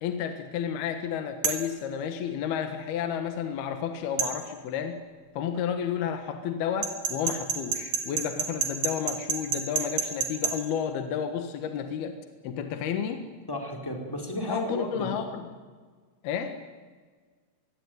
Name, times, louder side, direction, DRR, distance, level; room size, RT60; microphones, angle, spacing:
voice 1, 0.0-5.0 5.3-12.2 12.4-13.3 14.5-15.4 16.2-16.6, left 8 dB, 65° left, 7 dB, 3.1 m, -31 dB
sound 1, 1.4-1.7 4.2-4.3 6.8-10.6, right 7 dB, 60° right, 4.1 m, -28 dB
voice 2, 13.5-15.1, left 1 dB, 5° left, 2 dB, 4.1 m, -33 dB
25.5 x 21.5 x 9.4 m, 1.5 s
omnidirectional pair, 5.2 m